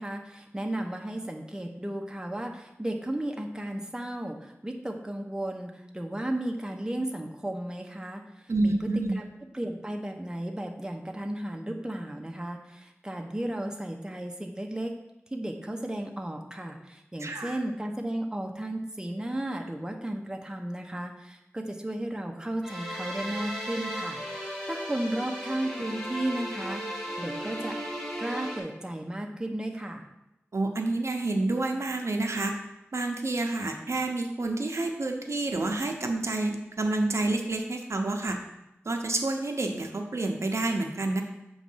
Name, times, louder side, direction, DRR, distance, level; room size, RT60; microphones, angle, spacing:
voice 1, 0.0-8.2 8.6-9.2 9.5-14.9 15.3-27.8 28.2-30.1, right 1 dB, 15° right, 2 dB, 0.8 m, -34 dB
voice 2, 8.5-9.2 17.2-17.6 30.5-32.6 32.9-38.4 38.8-41.2, right 2 dB, 75° right, 3 dB, 0.7 m, -29 dB
sound 1, 22.6-28.6, equal, 5° left, 1.6 m, -36 dB
7.4 x 3.1 x 5.5 m, 0.90 s
wide cardioid pair, 65°, 5 cm